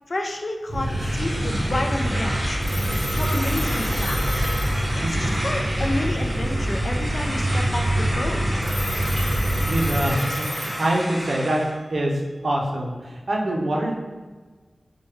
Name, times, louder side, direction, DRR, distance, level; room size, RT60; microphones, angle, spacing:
voice 1, 0.1-2.6 3.1-4.2 4.9-8.4, left 1 dB, 50° left, 3 dB, 0.4 m, -30 dB
sound 1, 0.7-10.1, right 1 dB, 45° right, 1.0 m, -25 dB
sound 2, 0.8-11.7, equal, 25° right, 1.4 m, -32 dB
Telephone, 2.6-5.5 8.6-11.5, equal, ahead, 0.5 m, -34 dB
voice 2, 5.0-5.5 9.6-11.6 11.9-13.9, right 1 dB, 65° right, 0 dB, 0.5 m, -25 dB
4.3 x 2.2 x 3.1 m, 1.3 s
wide cardioid pair, 85°, 0 cm